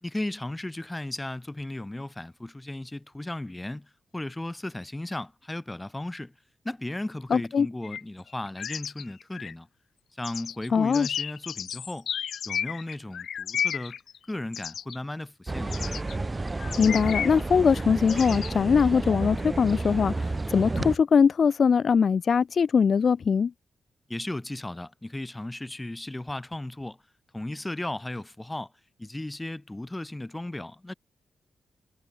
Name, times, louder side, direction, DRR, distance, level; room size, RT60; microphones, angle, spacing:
voice 1, 0.0-6.3 6.6-9.7 10.1-12.1 12.4-14.0 14.3-15.8 24.1-27.0 27.3-28.7 29.0-30.9, left 1 dB, 15° left, 3.4 m, -35 dB
voice 2, 7.3-7.7 10.7-11.1 16.8-23.5, left 6 dB, 55° left, 0.4 m, -22 dB
sound 1, 7.8-8.0 8.3-9.5 10.2-15.0 15.7-16.2 16.6-17.4 18.1-18.5, left 8 dB, 75° left, 1.0 m, -33 dB
sound 2, 15.5-21.0, right 2 dB, 25° right, 1.1 m, -31 dB
cardioid pair, 100°, 0 cm